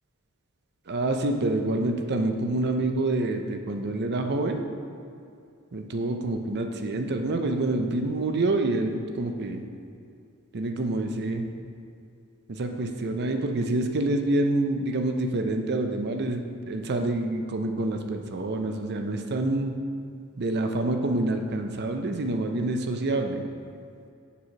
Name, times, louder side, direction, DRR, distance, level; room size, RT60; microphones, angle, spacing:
voice 1, 0.9-4.6 5.7-9.6 10.5-11.5 12.5-19.7 20.4-23.4, right 2 dB, 50° right, 5 dB, 0.6 m, -27 dB
6.9 x 4.8 x 5.9 m, 2.4 s
head